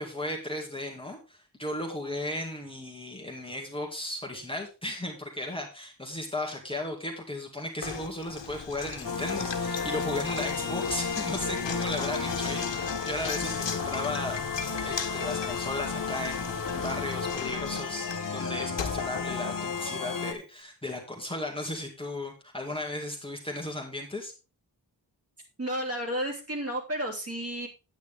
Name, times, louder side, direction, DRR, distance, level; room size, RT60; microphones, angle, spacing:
voice 1, 0.0-24.3, left 1 dB, 10° left, 0 dB, 2.0 m, -35 dB
Knock, 7.8-20.0, left 6 dB, 80° left, 1.4 m, -38 dB
sound 1, 9.0-20.3, left 5 dB, 50° left, 1.4 m, -33 dB
voice 2, 25.6-27.7, equal, 35° right, -1 dB, 3.2 m, -32 dB
9.2 x 9.2 x 3.6 m, 0.30 s
wide cardioid pair, 120°, 43 cm